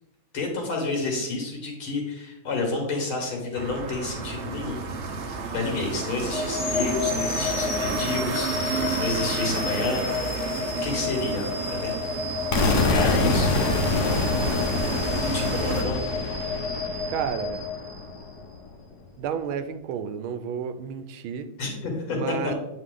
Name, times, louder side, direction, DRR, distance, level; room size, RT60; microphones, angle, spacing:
voice 1, 0.3-4.8 5.3-10.4 10.8-12.0 12.9-14.1 15.2-16.0 21.6-22.5, left 3 dB, 90° left, 0 dB, 2.6 m, -30 dB
sound 1, 3.5-15.8, right 4 dB, 55° right, 0.7 m, -31 dB
sound 2, 6.3-18.4, left 4 dB, 40° left, 1.3 m, -31 dB
voice 2, 7.9-8.2 17.1-17.6 19.2-21.5 22.1-22.5, right 7 dB, 85° right, 10 dB, 1.4 m, -31 dB
sound 3, 12.5-18.4, left 3 dB, 60° left, 1.2 m, -26 dB
8.3 x 4.6 x 3.8 m, 0.90 s
omnidirectional pair, 2.2 m